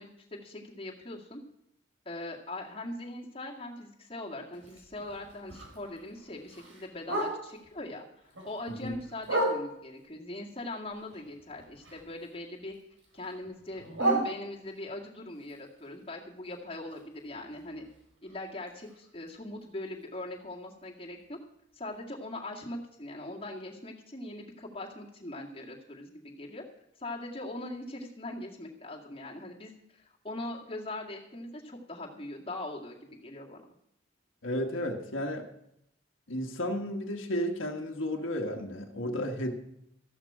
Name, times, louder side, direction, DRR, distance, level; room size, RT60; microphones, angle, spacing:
voice 1, 0.0-1.4 2.1-8.0 8.4-12.7 13.1-17.9 18.2-21.4 21.7-26.6 27.0-33.6, left 1 dB, 25° left, -2 dB, 2.1 m, -41 dB
Bark, 4.5-7.7 8.1-10.0 10.5-12.3 12.6-14.9 15.4-19.3 19.6-19.7 20.0-20.4 20.8-20.9 21.3-21.4 21.9-22.0, right 1 dB, 85° right, 4.7 m, -36 dB
voice 2, 34.4-35.5 36.3-39.5, equal, 80° left, 2 dB, 1.5 m, -33 dB
14.0 x 12.0 x 4.9 m, 0.78 s
head